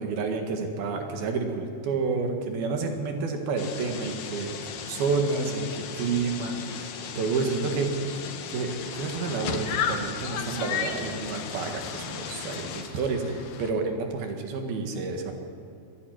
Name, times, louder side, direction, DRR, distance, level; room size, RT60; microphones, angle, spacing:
voice 1, 0.0-7.9 8.5-15.3, right 4 dB, 75° right, 4 dB, 3.7 m, -30 dB
sound 1, 3.6-12.8, left 7 dB, 90° left, 3.5 m, -38 dB
sound 2, 8.8-13.7, left 7 dB, 70° left, 2.8 m, -34 dB
24.0 x 11.5 x 9.5 m, 2.6 s
omnidirectional pair, 4.4 m